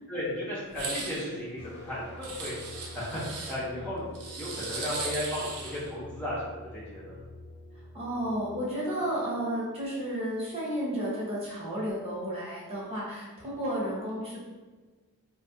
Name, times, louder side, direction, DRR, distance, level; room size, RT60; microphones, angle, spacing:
voice 1, 0.1-2.5 2.9-3.2 3.5-4.1 4.4-6.4 6.7-7.2, left 1 dB, 5° left, -9 dB, 0.6 m, -34 dB
sound 1, 0.7-1.2 2.2-3.6 4.2-5.9, right 4 dB, 85° right, 0.6 m, -38 dB
sound 2, 1.6-8.4, left 1 dB, 45° left, 0.7 m, -46 dB
voice 2, 7.9-14.4, equal, 25° right, -7 dB, 1.1 m, -32 dB
3.6 x 2.6 x 2.6 m, 1.3 s
head